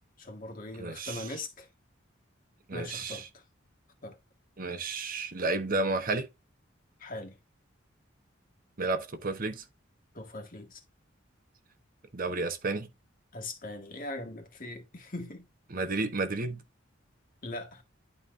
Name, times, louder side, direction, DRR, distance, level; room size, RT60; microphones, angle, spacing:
voice 1, 0.2-1.7 2.7-3.4 4.0-4.2 7.0-7.4 10.1-10.8 13.3-15.5 17.4-17.8, left 2 dB, 45° left, 1.7 m, -40 dB
voice 2, 0.8-1.3 2.7-3.3 4.6-6.3 8.8-9.6 12.1-12.9 15.7-16.6, right 3 dB, 45° right, 0.9 m, -32 dB
11.5 x 4.2 x 2.6 m
head